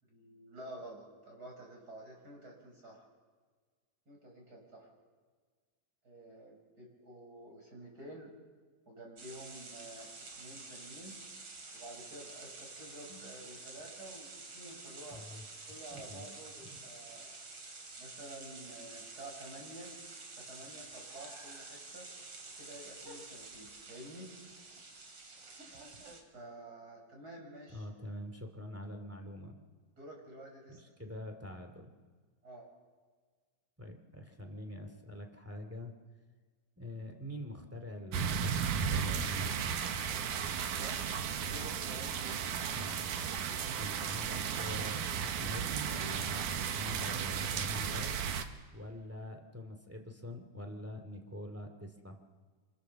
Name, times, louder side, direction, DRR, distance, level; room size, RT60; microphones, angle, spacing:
voice 1, 0.0-3.1 4.1-4.9 6.0-8.3 8.9-11.2 11.7-15.2 15.7-17.3 18.0-19.9 20.3-22.1 22.6-24.3 26.3-27.9 30.0-30.9 32.4-32.7 40.1-41.1 41.4-42.4, right 1 dB, 25° right, -1 dB, 7.6 m, -50 dB
sound 1, 9.2-26.2, right 3 dB, 45° right, 3.7 m, -49 dB
voice 2, 15.1-15.4 15.9-16.3 16.6-16.8 27.7-29.6 30.7-31.9 33.8-35.9 36.8-39.5 42.7-43.1 43.7-48.2 48.7-52.2, left 1 dB, 5° right, 3 dB, 2.0 m, -45 dB
sound 2, 38.1-48.5, right 7 dB, 75° right, 2.8 m, -35 dB
29.5 x 26.0 x 7.1 m, 1.5 s
omnidirectional pair, 3.8 m